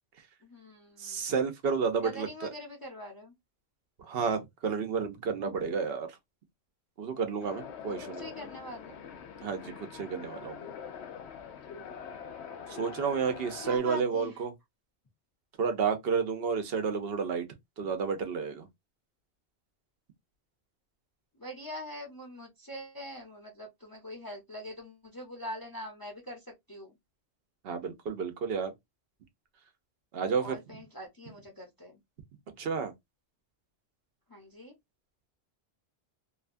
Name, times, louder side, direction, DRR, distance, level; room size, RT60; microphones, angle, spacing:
voice 1, 0.4-1.3 2.0-3.3 8.2-9.0 13.6-14.4 21.3-27.0 30.4-32.0 34.3-34.7, equal, 25° left, 0.6 m, -43 dB
voice 2, 1.0-2.5 4.0-6.2 7.0-8.3 9.4-10.7 12.7-14.5 15.6-17.4 17.8-18.7 27.6-28.7 30.1-30.6 32.6-32.9, right 5 dB, 65° right, 0.9 m, -31 dB
sound 1, 7.4-13.8, left 7 dB, 85° left, 0.9 m, -44 dB
2.8 x 2.2 x 2.5 m
omnidirectional pair, 1.1 m